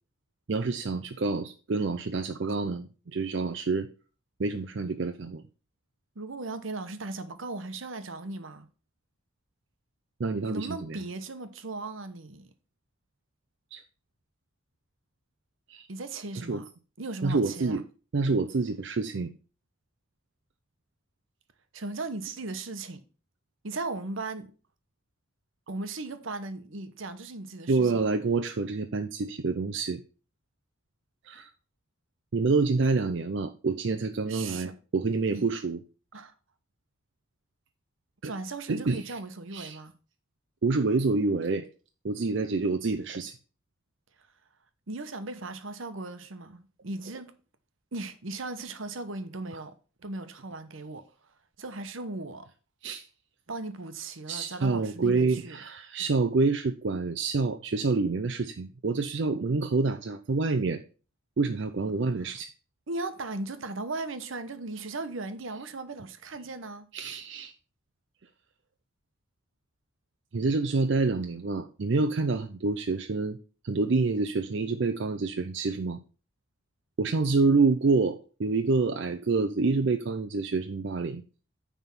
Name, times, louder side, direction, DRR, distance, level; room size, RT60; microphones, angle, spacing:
voice 1, 0.5-3.9 4.4-5.4 10.2-11.0 13.7-13.8 15.7-15.9 16.4-16.6 17.2-17.8 18.1-19.3 27.7-30.0 31.2-31.5 32.3-35.8 38.2-38.3 38.7-39.2 39.5-39.8 40.6-41.7 42.0-43.3 52.8-53.0 54.3-60.8 61.4-62.5 66.9-67.5 70.3-73.4 73.6-76.0 77.0-81.2, right 3 dB, 60° right, 0.5 m, -27 dB
voice 2, 6.2-8.7 10.4-12.5 15.9-16.6 17.0-17.8 21.7-23.0 23.6-24.5 25.7-28.0 34.3-34.7 35.3-35.5 36.1-36.3 38.2-39.9 44.9-47.3 47.9-49.7 50.0-51.0 51.6-52.5 53.5-55.6 62.9-66.9, right 2 dB, 75° right, 1.0 m, -37 dB
9.4 x 3.6 x 6.0 m
head